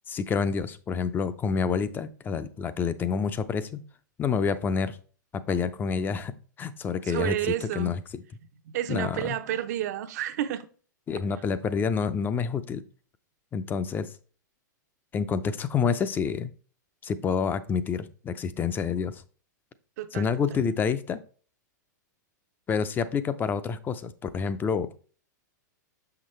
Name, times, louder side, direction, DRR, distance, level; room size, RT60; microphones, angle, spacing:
voice 1, 0.1-3.8 4.2-5.0 5.5-6.3 6.6-7.3 7.8-8.0 8.9-9.4 11.1-12.8 13.5-14.1 15.1-16.5 17.0-19.2 20.1-21.2 22.7-24.9, left 6 dB, 20° left, 0.5 m, -28 dB
voice 2, 7.0-7.9 8.7-10.7 20.0-20.3, right 12 dB, 60° right, 0.7 m, -30 dB
6.2 x 5.8 x 3.2 m
hypercardioid pair, 115°, 10 cm